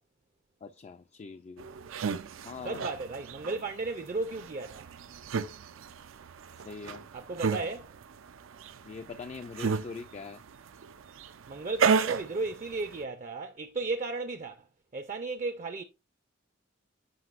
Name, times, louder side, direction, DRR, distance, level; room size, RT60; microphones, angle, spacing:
voice 1, 0.6-1.7 2.4-2.8 6.6-7.1 8.8-10.4, left 4 dB, 35° left, 0.3 m, -42 dB
sound 1, 1.6-13.0, right 6 dB, 90° right, 0.5 m, -34 dB
voice 2, 2.6-4.9 7.1-7.9 11.5-14.7 14.9-15.8, right 3 dB, 40° right, 0.5 m, -34 dB
7.7 x 5.7 x 2.5 m
head